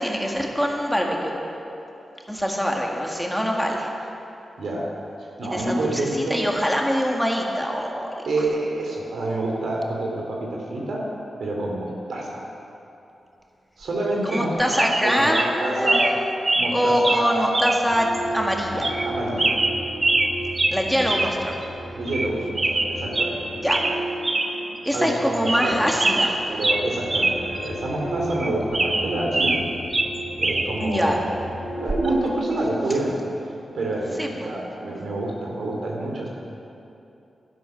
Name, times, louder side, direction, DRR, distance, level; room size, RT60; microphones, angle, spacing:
voice 1, 0.0-1.3 2.3-3.9 5.5-8.2 14.2-16.3 16.7-18.1 18.3-18.9 20.7-21.5 23.6-23.8 24.8-26.4 30.8-31.1 34.2-34.5, equal, ahead, 0 dB, 1.6 m, -24 dB
voice 2, 5.2-6.4 8.3-11.0 11.4-12.4 13.8-14.5 14.8-16.0 16.5-17.7 18.7-19.6 21.9-23.4 24.9-25.9 26.5-29.6 30.4-31.3 31.8-33.1 33.7-36.3, right 1 dB, 80° right, -2 dB, 2.6 m, -27 dB
sound 1, 14.3-14.5 14.7-15.0 15.3-15.5 15.9-16.1 16.5-16.7 17.0-17.2 17.5-17.8 18.1-18.2 18.8-19.1 19.4-20.3 20.6-20.8 21.1-21.3 21.6-21.7 22.1-22.3 22.6-23.3 23.7-24.0 24.2-24.5 24.9-25.0 25.3-25.7 26.0-27.4 27.7-27.8 28.3-29.6 29.9-30.7 31.9-32.1, right 2 dB, 35° right, 0.9 m, -23 dB
sound 2, 17.6-32.3, right 1 dB, 50° left, 2.5 m, -34 dB
12.0 x 10.5 x 5.8 m, 2.8 s
cardioid pair, 70°, 0 cm